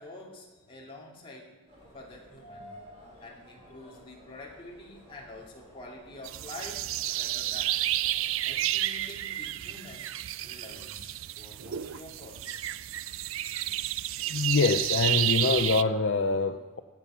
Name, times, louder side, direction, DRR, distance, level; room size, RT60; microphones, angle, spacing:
voice 1, 0.0-1.5 1.9-2.7 3.2-7.8 8.5-10.1 10.4-12.7, left 1 dB, 25° left, -3 dB, 2.5 m, -47 dB
sound 1, 1.7-8.6, equal, 30° right, 4.5 m, -53 dB
sound 2, 6.2-15.8, right 14 dB, 65° right, 0.4 m, -31 dB
voice 2, 14.3-16.8, left 4 dB, 60° left, 8 dB, 0.5 m, -25 dB
16.5 x 7.3 x 5.7 m, 1.4 s
head